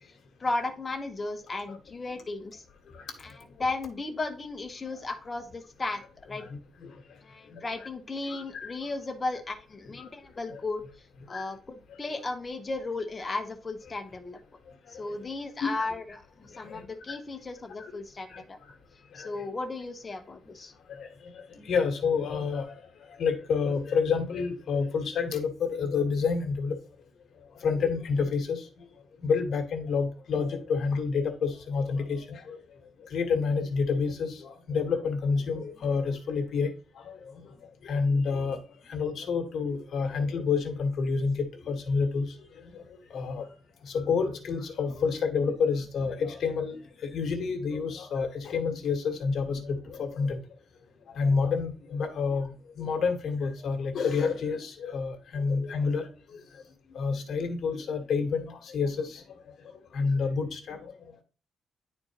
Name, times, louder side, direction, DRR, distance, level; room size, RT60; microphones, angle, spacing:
voice 1, 0.4-2.6 3.2-6.5 7.2-10.8 11.3-14.4 14.9-18.6 19.1-20.7, left 3 dB, 20° left, 6 dB, 0.9 m, -35 dB
voice 2, 6.5-6.9 7.5-7.7 8.3-8.7 10.0-10.1 10.5-10.6 11.3-11.5 15.6-15.9 16.5-16.8 17.1-17.2 17.8-17.9 18.3-18.4 19.1-19.5 20.9-22.7 23.1-26.8 27.6-28.7 29.2-32.6 33.1-36.7 37.0-37.1 37.8-38.6 38.9-42.3 42.7-42.8 43.1-43.5 43.8-50.4 51.1-56.1 56.9-59.2 59.9-60.9, left 5 dB, 55° left, 5 dB, 1.4 m, -29 dB
10.5 x 4.3 x 2.9 m, 0.36 s
cardioid pair, 165°, 0 cm